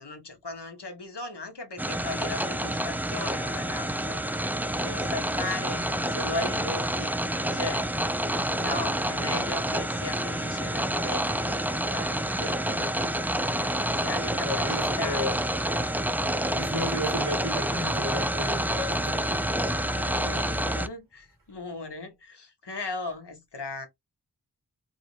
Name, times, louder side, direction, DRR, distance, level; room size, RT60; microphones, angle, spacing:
voice 1, 0.0-4.2 4.8-5.8 6.1-7.2 7.5-7.9 8.5-12.9 13.9-15.3 19.8-23.9, left 2 dB, 90° left, 1.5 m, -37 dB
sound 1, 1.8-20.9, right 1 dB, 5° right, 0.4 m, -28 dB
voice 2, 14.4-15.3 16.4-20.0, left 1 dB, 55° right, 2.5 m, -33 dB
4.7 x 2.7 x 3.1 m
wide cardioid pair, 45°, 40 cm